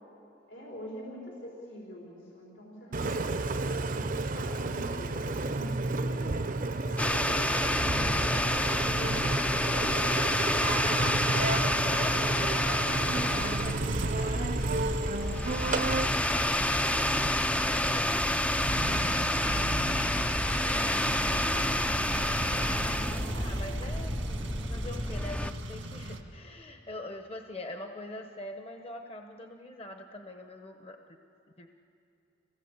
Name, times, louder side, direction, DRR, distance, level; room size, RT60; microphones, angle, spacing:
voice 1, 0.5-3.5 3.9-10.3 10.8-12.1 20.4-21.7 22.3-22.9, equal, 85° left, -4 dB, 4.4 m, -45 dB
Engine, 2.9-17.9, right 2 dB, 45° right, 0.7 m, -32 dB
sound 1, 7.0-25.5, left 1 dB, 5° left, 0.4 m, -29 dB
voice 2, 8.5-9.0 10.8-16.7 17.2-19.2 23.4-24.2 24.7-31.0 31.6-31.7, left 1 dB, 30° left, 5 dB, 1.0 m, -44 dB
sound 2, 12.1-26.2, right 1 dB, 85° right, 1.8 m, -36 dB
26.5 x 17.5 x 8.2 m, 2.6 s
head